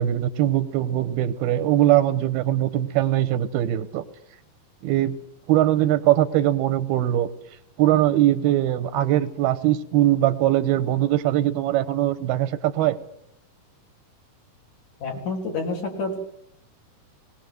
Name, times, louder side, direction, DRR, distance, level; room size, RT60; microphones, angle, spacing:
voice 1, 0.0-4.0 4.8-5.2 5.5-7.3 7.8-13.0, right 13 dB, 85° right, 12 dB, 3.0 m, -21 dB
voice 2, 15.0-16.2, left 3 dB, 50° left, 1 dB, 4.6 m, -28 dB
20.5 x 19.0 x 7.9 m, 0.76 s
omnidirectional pair, 4.4 m